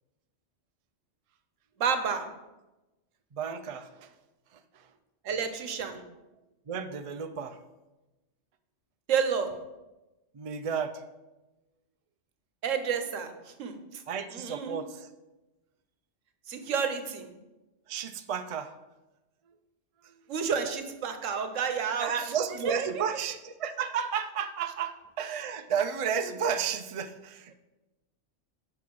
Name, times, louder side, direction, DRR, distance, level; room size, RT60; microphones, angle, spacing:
voice 1, 1.8-2.2 5.2-6.0 9.1-9.5 12.6-14.0 14.3-14.8 16.5-17.3 20.3-22.1 22.6-22.9, right 6 dB, 85° right, 7 dB, 1.2 m, -30 dB
voice 2, 3.3-4.1 4.5-4.9 6.7-7.6 10.3-11.0 14.1-15.1 17.9-18.8 20.0-20.2 22.0-27.5, right 7 dB, 50° right, 8 dB, 0.4 m, -32 dB
8.3 x 5.8 x 4.7 m, 1.1 s
omnidirectional pair, 1.3 m